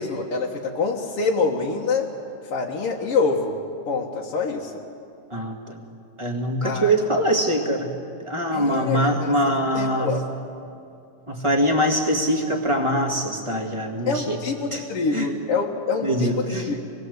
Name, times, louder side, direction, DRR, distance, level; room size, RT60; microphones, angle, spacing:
voice 1, 0.0-2.1 2.5-3.6 3.9-4.7 6.6-6.9 8.5-9.3 9.7-10.2 14.1-16.8, left 4 dB, 55° left, -2 dB, 1.8 m, -25 dB
voice 2, 5.3-5.8 6.2-7.9 8.2-10.1 11.3-14.4 14.7-14.9 15.1-15.3 16.0-16.7, equal, 15° right, 1 dB, 1.1 m, -23 dB
26.5 x 21.0 x 8.0 m, 2.6 s
omnidirectional pair, 4.0 m